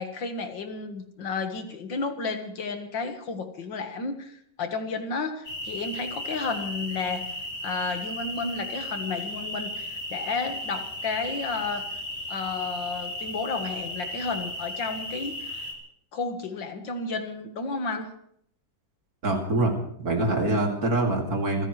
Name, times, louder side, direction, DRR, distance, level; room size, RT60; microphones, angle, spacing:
voice 1, 0.0-7.2 7.6-11.8 12.3-15.7 16.1-18.1, left 4 dB, 75° left, 6 dB, 2.2 m, -32 dB
sound 1, 5.4-15.7, left 1 dB, 30° left, 3.6 m, -35 dB
voice 2, 19.2-19.7 20.0-21.7, right 2 dB, 50° right, 1 dB, 3.1 m, -24 dB
27.0 x 15.5 x 3.3 m, 0.67 s
omnidirectional pair, 2.1 m